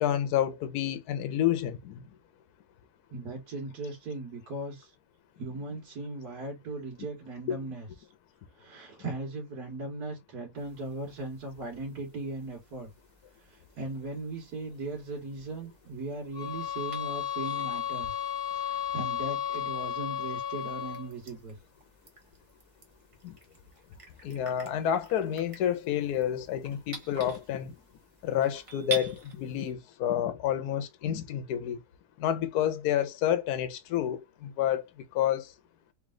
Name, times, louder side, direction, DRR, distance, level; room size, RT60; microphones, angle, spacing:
voice 1, 0.0-2.0 7.5-7.6 23.2-23.4 24.2-27.7 28.2-31.8 32.2-34.8 35.1-35.5, left 10 dB, 70° left, 1.1 m, -29 dB
voice 2, 3.1-4.9 5.4-8.1 8.6-12.9 13.4-21.6, right 2 dB, 65° right, 1.7 m, -38 dB
sound 1, 10.5-29.7, right 5 dB, 25° right, 1.0 m, -48 dB
sound 2, 16.3-21.1, left 10 dB, 5° left, 0.8 m, -33 dB
3.3 x 3.2 x 3.7 m
omnidirectional pair, 1.8 m